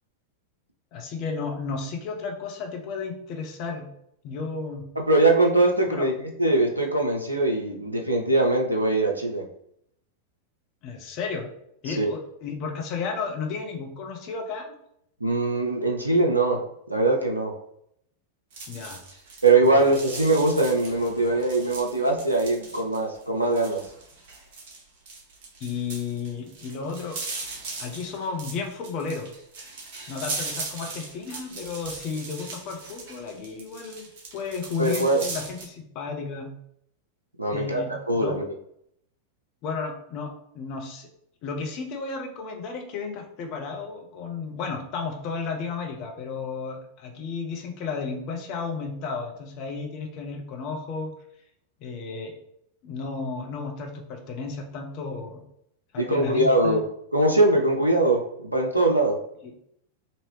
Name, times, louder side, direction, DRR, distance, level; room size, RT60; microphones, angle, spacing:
voice 1, 0.9-3.9 4.2-4.9 5.9-6.1 10.8-11.5 11.8-14.7 18.7-19.0 19.6-19.9 25.6-27.2 27.8-29.3 30.1-34.0 34.3-36.5 37.5-38.3 39.6-41.1 41.4-51.1 51.8-52.3 52.8-55.4 55.9-56.8 59.4-59.5, left 4 dB, 40° left, 3 dB, 0.6 m, -33 dB
voice 2, 5.0-6.1 6.4-9.4 11.9-12.1 15.2-16.6 16.9-17.5 19.4-23.8 34.8-35.2 37.4-37.8 38.1-38.4 56.0-56.8 57.1-59.2, right 2 dB, 85° right, 1 dB, 0.3 m, -22 dB
sound 1, 18.5-35.6, right 3 dB, 50° right, 1.0 m, -39 dB
2.9 x 2.7 x 3.0 m, 0.74 s
figure-of-eight pair, 90°, 0 cm